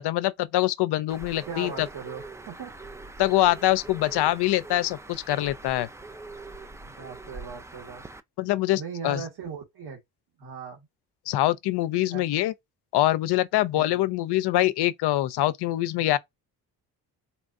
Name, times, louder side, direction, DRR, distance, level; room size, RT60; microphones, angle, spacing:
voice 1, 0.0-1.9 3.2-5.9 8.4-9.2 11.3-12.5 12.9-16.2, left 15 dB, 65° left, 0.6 m, -24 dB
Bird, 1.1-8.2, right 2 dB, 10° right, 0.3 m, -43 dB
voice 2, 1.5-2.7 6.8-8.0 8.7-10.0 10.4-10.9 12.1-12.2 13.7-14.0, right 6 dB, 60° right, 1.6 m, -38 dB
4.1 x 2.4 x 2.6 m
supercardioid pair, 65°, 43 cm